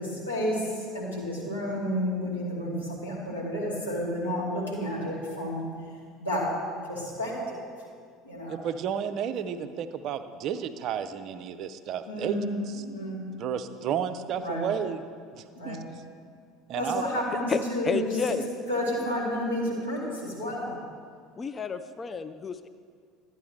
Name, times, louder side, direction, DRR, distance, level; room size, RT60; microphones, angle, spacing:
voice 1, 0.0-5.7 6.2-6.5 6.8-7.7 8.2-8.6 12.1-13.3 14.4-14.7 15.6-15.8 16.8-18.1 18.7-20.7, equal, 80° left, -7 dB, 2.4 m, -31 dB
voice 2, 8.5-12.4 12.7-12.8 13.4-15.0 15.3-15.8 16.7-17.0, right 8 dB, 45° right, 10 dB, 0.5 m, -32 dB
voice 3, 17.3-18.5 21.4-22.7, left 5 dB, 25° left, 12 dB, 0.3 m, -31 dB
12.5 x 9.3 x 3.2 m, 2.1 s
figure-of-eight pair, 65°, 0 cm